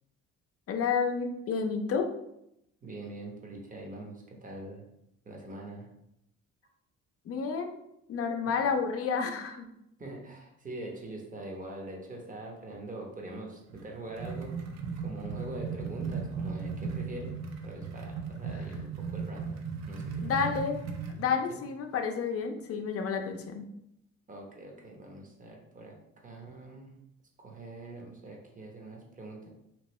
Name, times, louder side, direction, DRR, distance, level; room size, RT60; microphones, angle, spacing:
voice 1, 0.7-2.1 7.3-7.8 8.1-9.7 20.2-20.8 21.2-23.7, left 6 dB, 50° left, 5 dB, 0.5 m, -30 dB
voice 2, 2.8-4.9 5.2-5.9 8.4-8.6 10.0-17.3 17.6-19.6 19.9-20.2 20.5-20.6 21.5-21.6 24.3-26.9 27.4-29.5, right 2 dB, 25° right, 0 dB, 0.9 m, -43 dB
sound 1, 13.7-21.2, right 5 dB, 60° right, 0.6 m, -37 dB
3.0 x 2.6 x 3.0 m, 0.80 s
cardioid pair, 90°, 30 cm